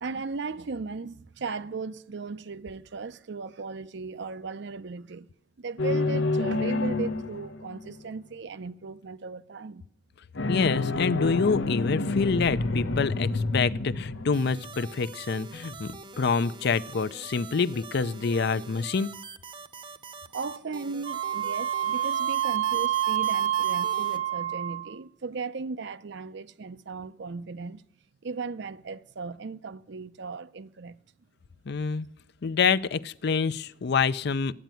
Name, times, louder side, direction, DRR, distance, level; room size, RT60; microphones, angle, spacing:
voice 1, 0.0-5.3 5.6-9.8 20.3-27.8 28.2-31.0, right 4 dB, 65° right, 0.6 m, -37 dB
sound 1, 5.8-8.0 10.4-15.4, left 2 dB, 85° left, 0.8 m, -29 dB
voice 2, 10.5-19.1 31.7-32.1 32.4-34.5, left 5 dB, 60° left, 0.5 m, -26 dB
sound 2, 14.3-24.2, right 4 dB, 25° right, 0.8 m, -44 dB
Wind instrument woodwind instrument, 21.0-25.0, right 11 dB, 85° right, 1.2 m, -27 dB
13.5 x 9.2 x 9.0 m
head